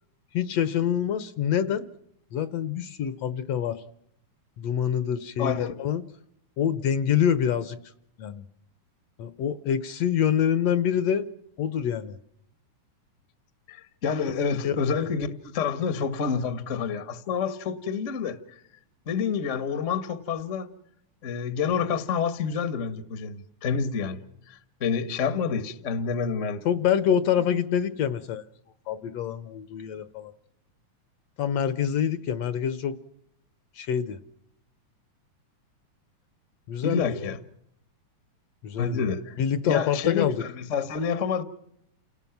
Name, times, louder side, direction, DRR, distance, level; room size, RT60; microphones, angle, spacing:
voice 1, 0.3-1.8 2.3-3.8 4.6-6.0 6.6-7.8 8.2-8.4 9.2-11.2 11.6-12.2 14.6-14.8 26.6-28.4 28.9-30.3 31.4-32.9 33.8-34.2 36.7-37.3 38.6-39.1 39.4-40.4, left 9 dB, 65° left, 1.8 m, -26 dB
voice 2, 5.4-5.7 13.7-18.4 19.1-20.7 21.2-24.2 24.5-26.6 36.8-37.4 38.8-39.3 39.6-41.4, left 6 dB, 40° left, 1.1 m, -28 dB
29.0 x 18.5 x 5.9 m
omnidirectional pair, 3.4 m